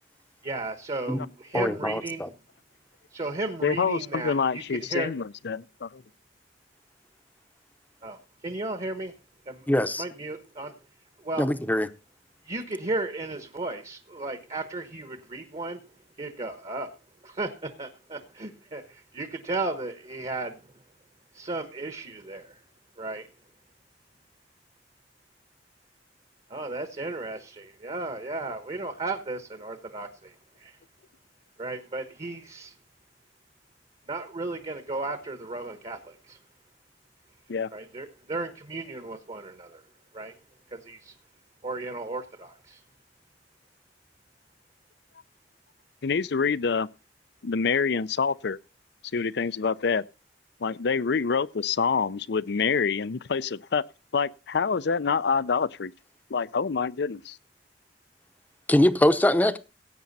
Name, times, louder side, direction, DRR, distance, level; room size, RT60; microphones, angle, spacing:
voice 1, 0.4-2.3 3.1-5.1 8.0-9.1 9.5-9.7 10.0-10.8 11.2-11.5 12.4-15.8 16.2-16.9 17.2-20.8 21.3-22.6 23.0-23.3 26.5-30.8 31.6-32.7 34.1-36.4 37.7-39.8 40.1-40.3 40.7-41.1 41.6-42.8, right 2 dB, 35° right, 1.1 m, -35 dB
voice 2, 1.5-2.3 9.7-10.0 11.4-11.9 58.7-59.6, left 1 dB, 10° left, 0.8 m, -22 dB
voice 3, 3.6-6.0 37.5-37.7 46.0-46.9 47.4-48.6 49.1-50.0 50.6-53.8 54.1-55.9 56.3-57.4, left 5 dB, 65° left, 0.5 m, -26 dB
16.5 x 8.7 x 4.1 m
head